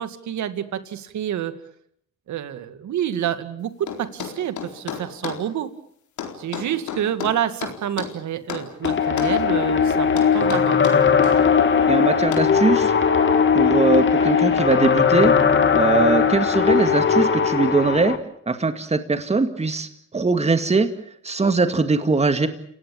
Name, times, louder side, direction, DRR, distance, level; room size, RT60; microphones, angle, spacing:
voice 1, 0.0-1.6 2.3-5.7 6.4-10.8, right 10 dB, 70° right, 11 dB, 2.3 m, -28 dB
sound 1, 3.9-5.4 6.2-8.2 8.5-9.4 10.2-11.4 12.3-12.5, left 8 dB, 75° left, 4.3 m, -32 dB
sound 2, 8.8-18.2, left 6 dB, 40° left, 2.5 m, -18 dB
voice 2, 11.9-12.9 13.5-15.3 15.7-18.2 18.5-20.9 21.2-22.5, right 3 dB, 20° right, 9 dB, 2.2 m, -21 dB
29.5 x 17.5 x 8.8 m, 0.68 s
cardioid pair, 90°, 30 cm